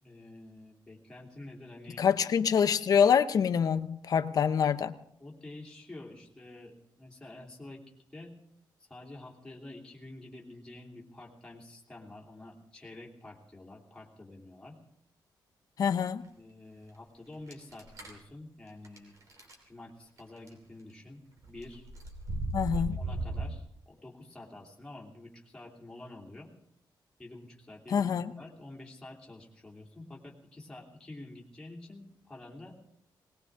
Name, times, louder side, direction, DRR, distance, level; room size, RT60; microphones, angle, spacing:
voice 1, 0.0-2.0 5.2-7.8 8.1-8.3 8.8-14.8 16.4-19.2 19.6-21.8 22.7-26.5 27.2-28.1 28.4-32.7, left 2 dB, 10° left, 3.1 m, -48 dB
voice 2, 2.0-4.9 15.8-16.2 22.5-23.0 27.9-28.3, left 7 dB, 50° left, 0.8 m, -26 dB
sound 1, 17.5-18.2 18.8-19.0 19.3-19.5 20.2-20.5 21.4-23.5, right 2 dB, 40° right, 3.2 m, -36 dB
19.5 x 19.5 x 3.7 m
wide cardioid pair, 175°, 8 cm